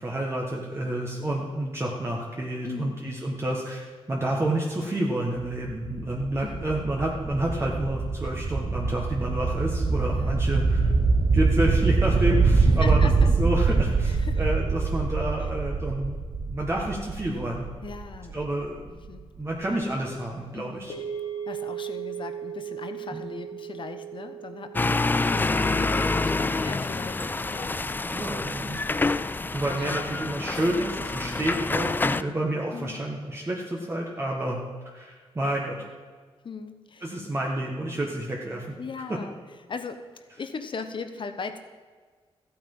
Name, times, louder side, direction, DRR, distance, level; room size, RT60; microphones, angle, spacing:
voice 1, 0.0-10.9 11.3-13.0 13.4-16.2 16.5-17.7 18.3-19.0 19.4-20.9 23.1-23.2 24.8-25.0 28.1-28.8 29.2-34.6 34.8-35.8 37.0-38.7, right 1 dB, 25° right, -2 dB, 1.5 m, -29 dB
voice 2, 2.6-3.0 6.4-6.9 10.1-10.4 10.7-11.0 12.8-13.3 14.0-14.4 17.8-18.4 19.0-19.2 20.5-20.9 21.5-27.2 27.5-27.8 28.6-28.9 29.6-29.9 32.7-33.0 35.8-35.9 36.4-37.2 38.8-39.4 39.7-41.6, left 5 dB, 55° left, 9 dB, 1.0 m, -39 dB
sound 1, 5.4-19.1, right 4 dB, 40° right, 0.9 m, -24 dB
sound 2, 20.9-29.2, right 8 dB, 75° left, 1.9 m, -39 dB
sound 3, 24.7-32.2, left 3 dB, 20° left, 0.4 m, -27 dB
14.0 x 8.7 x 5.6 m, 1.5 s
wide cardioid pair, 110°, 10 cm